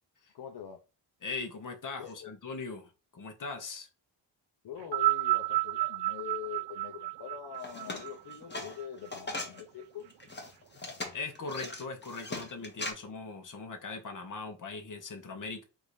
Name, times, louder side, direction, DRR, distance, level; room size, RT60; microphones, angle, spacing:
voice 1, 0.3-0.8 2.0-2.3 4.6-10.1, left 9 dB, 60° left, 0.8 m, -43 dB
voice 2, 1.2-3.9 11.1-15.6, left 4 dB, 45° left, 1.2 m, -40 dB
sound 1, 4.8-9.3 10.2-10.3, right 18 dB, 65° right, 0.6 m, -31 dB
sound 2, 7.5-9.6 10.1-12.9, left 2 dB, 25° left, 1.2 m, -39 dB
3.7 x 2.7 x 4.8 m
cardioid pair, 110°, 45 cm